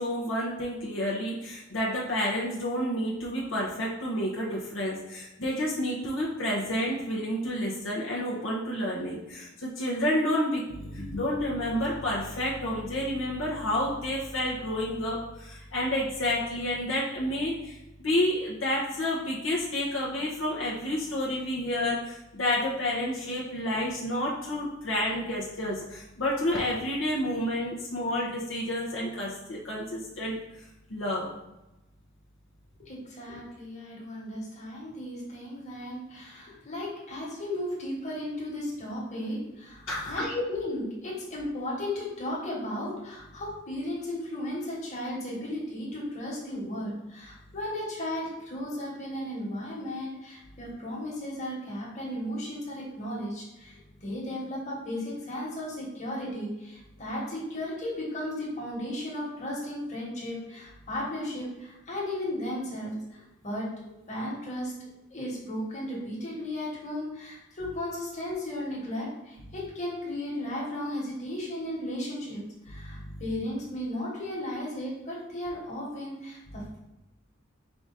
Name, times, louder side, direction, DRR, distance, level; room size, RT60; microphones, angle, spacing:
voice 1, 0.0-17.8 18.0-30.4 30.9-31.3 39.9-40.4 72.8-73.2, left 1 dB, 75° left, -5 dB, 0.8 m, -30 dB
voice 2, 32.9-72.4 72.7-76.8, left 1 dB, 40° left, -5 dB, 1.5 m, -35 dB
4.7 x 2.5 x 4.0 m, 0.95 s
head